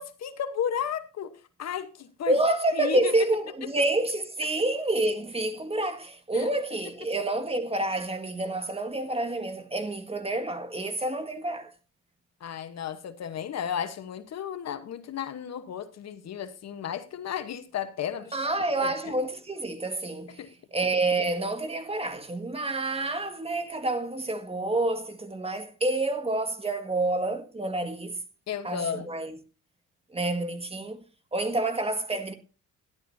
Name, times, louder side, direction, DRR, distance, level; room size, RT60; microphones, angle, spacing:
voice 1, 0.0-1.3 1.6-2.4 2.7-3.1 6.3-6.5 12.4-18.5 18.8-18.9 20.4-20.5 28.5-29.1, left 8 dB, 60° left, 1.1 m, -33 dB
voice 2, 2.3-11.7 18.3-20.4 20.7-28.2 28.6-29.4 30.1-31.0 31.3-32.3, right 2 dB, 20° right, 1.7 m, -28 dB
13.0 x 11.0 x 2.7 m
cardioid pair, 90°, 30 cm